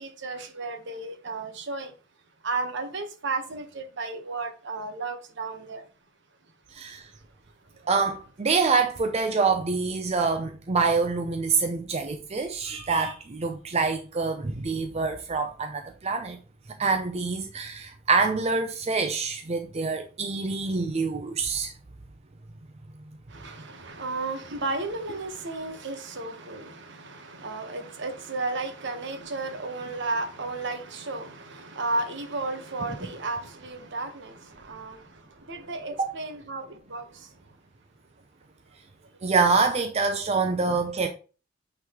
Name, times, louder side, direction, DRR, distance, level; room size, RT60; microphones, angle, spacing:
voice 1, 0.0-1.9 2.4-5.8 7.8-7.9 23.3-37.3, right 3 dB, 65° right, 1.1 m, -33 dB
voice 2, 7.9-16.4 16.8-21.7 39.2-41.1, right 4 dB, 35° right, 0.5 m, -26 dB
8.7 x 3.9 x 3.0 m
head